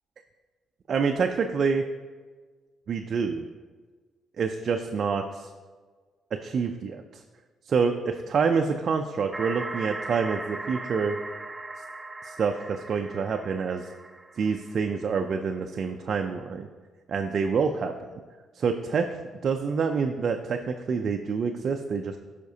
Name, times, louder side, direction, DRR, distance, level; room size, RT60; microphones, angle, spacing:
voice 1, 0.9-1.8 2.9-3.5 4.4-5.5 6.3-7.2 7.7-11.2 12.2-13.9 14.4-16.7 17.1-18.1 18.6-19.1 19.4-22.2, right 5 dB, 55° right, 5 dB, 0.4 m, -27 dB
sound 1, 9.3-15.0, right 2 dB, 15° right, 0.6 m, -38 dB
11.5 x 5.0 x 2.8 m, 1.4 s
cardioid pair, 90°, 0 cm